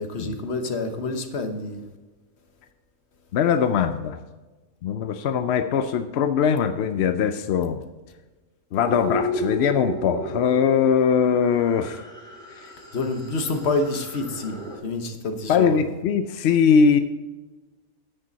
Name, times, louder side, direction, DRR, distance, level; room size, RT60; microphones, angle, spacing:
voice 1, 0.0-1.8 12.9-15.9, left 3 dB, 50° left, 5 dB, 1.3 m, -28 dB
voice 2, 3.3-4.2 4.8-7.8 8.7-12.0 12.6-12.7 15.5-17.0, left 7 dB, 65° left, 9 dB, 0.7 m, -21 dB
sound 1, 8.8-14.8, equal, 5° left, 3.1 m, -33 dB
10.0 x 9.0 x 4.0 m, 1.2 s
omnidirectional pair, 1.5 m